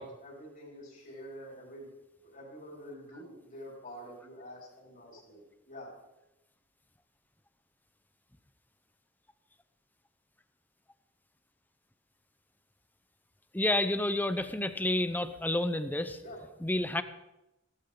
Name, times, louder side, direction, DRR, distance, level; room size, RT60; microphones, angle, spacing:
voice 1, 0.0-1.9 2.2-5.9 16.2-16.4, equal, 50° left, -3 dB, 5.3 m, -47 dB
voice 2, 13.5-16.2 16.6-17.0, left 1 dB, 10° left, 11 dB, 0.8 m, -29 dB
16.0 x 15.0 x 3.9 m, 0.94 s
head